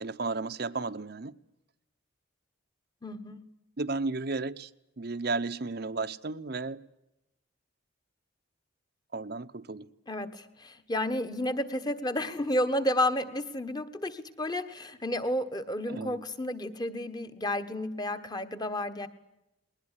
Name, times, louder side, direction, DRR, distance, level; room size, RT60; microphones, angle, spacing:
voice 1, 0.0-1.3 3.8-4.7 5.0-6.8 9.1-9.9 15.9-16.2, right 3 dB, 50° right, 0.8 m, -33 dB
voice 2, 3.0-3.4 10.1-19.1, left 1 dB, 20° left, 1.3 m, -31 dB
21.0 x 19.5 x 10.0 m
head